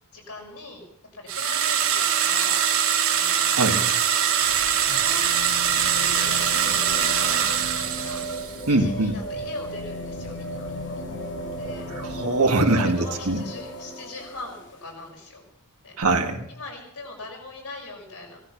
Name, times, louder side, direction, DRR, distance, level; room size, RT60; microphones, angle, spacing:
voice 1, 0.1-0.8 1.1-2.6 3.1-3.6 4.7-5.3 5.9-7.4 7.7-8.2 8.7-10.7 11.5-11.8 12.5-15.4 15.8-16.0 16.5-18.4, left 3 dB, 90° left, -1 dB, 6.1 m, -40 dB
sound 1, 1.3-8.6, right 8 dB, 65° right, 2.0 m, -23 dB
voice 2, 3.5-3.9 8.7-9.1 12.0-13.4 16.0-16.5, right 2 dB, 85° right, 4 dB, 1.9 m, -22 dB
sound 2, 4.1-14.8 16.0-16.1, equal, 55° left, 2.2 m, -35 dB
18.5 x 13.0 x 5.9 m, 0.76 s
head